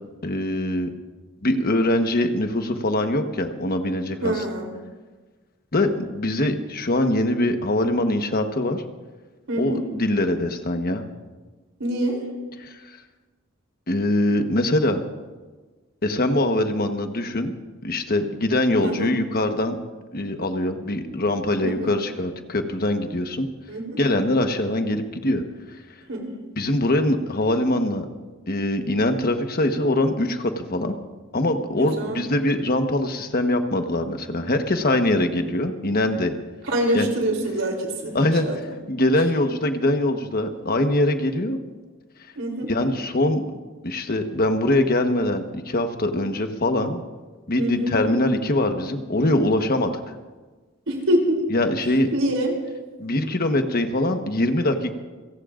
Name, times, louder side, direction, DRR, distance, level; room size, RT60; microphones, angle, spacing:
voice 1, 0.2-0.9 1.4-4.4 5.7-8.8 9.6-11.0 12.6-12.7 13.9-15.0 16.0-17.5 17.8-19.8 20.1-23.5 24.0-25.4 26.6-28.1 28.5-31.0 31.3-36.3 36.9-37.1 38.1-38.5 38.9-41.6 42.7-43.4 43.8-47.0 47.5-49.9 51.5-52.1 53.0-54.9, left 1 dB, 50° left, 6 dB, 1.3 m, -23 dB
voice 2, 4.2-4.7 9.5-9.8 11.8-12.2 18.8-19.1 21.6-21.9 23.7-24.0 26.1-26.3 31.8-32.2 36.7-38.6 42.4-42.7 47.6-47.9 50.9-51.5 52.1-52.5, right 1 dB, 85° right, 1 dB, 3.5 m, -25 dB
28.5 x 17.5 x 2.6 m, 1.3 s
head